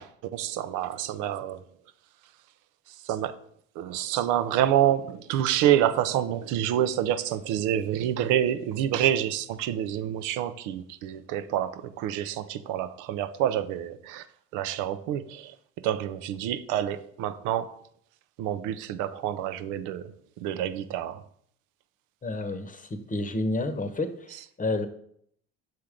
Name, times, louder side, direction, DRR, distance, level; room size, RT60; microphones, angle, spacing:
voice 1, 0.0-1.6 3.0-3.4 3.8-14.2 14.5-15.5 15.8-17.8 18.4-21.2, right 11 dB, 75° right, 0.6 m, -27 dB
voice 2, 22.2-24.9, left 2 dB, 25° left, 0.9 m, -30 dB
5.9 x 3.7 x 4.9 m
hypercardioid pair, 60°, 32 cm